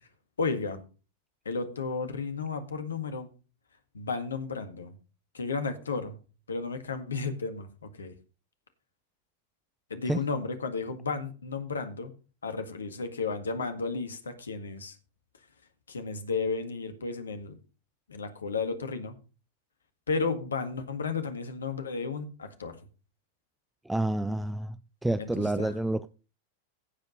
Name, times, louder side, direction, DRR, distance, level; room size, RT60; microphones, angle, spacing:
voice 1, 0.4-0.8 1.5-3.3 3.9-4.9 5.3-6.2 6.5-8.1 9.9-12.1 12.4-15.0 15.9-17.6 18.1-19.2 20.1-22.8 25.2-25.7, left 4 dB, 70° left, 1.8 m, -33 dB
voice 2, 23.8-24.8 25.0-26.1, right 2 dB, 5° right, 0.5 m, -28 dB
15.5 x 5.3 x 5.2 m
figure-of-eight pair, 90°, 0 cm